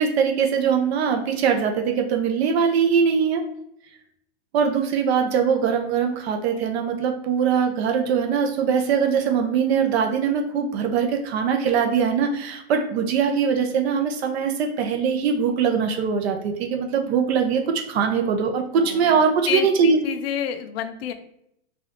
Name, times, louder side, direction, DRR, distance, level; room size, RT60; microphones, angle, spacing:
voice 1, 0.0-3.4 4.5-20.0, right 6 dB, 70° right, 4 dB, 0.6 m, -22 dB
voice 2, 18.8-19.1 19.5-21.1, left 9 dB, 65° left, 8 dB, 0.5 m, -29 dB
4.1 x 2.3 x 2.9 m, 0.75 s
supercardioid pair, 145°, 32 cm